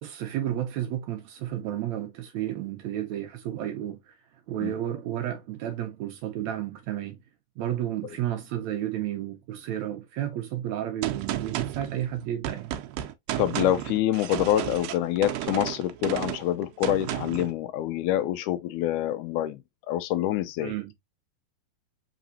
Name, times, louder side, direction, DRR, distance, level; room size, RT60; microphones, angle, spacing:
voice 1, 0.0-4.1 4.5-7.2 7.6-12.8 20.6-20.9, right 12 dB, 75° right, 1.8 m, -32 dB
Gunshot gunfire, 11.0-17.5, right 13 dB, 90° right, 2.2 m, -33 dB
voice 2, 13.4-19.6 19.9-20.7, left 13 dB, 80° left, 1.9 m, -26 dB
5.0 x 3.5 x 2.6 m
omnidirectional pair, 3.7 m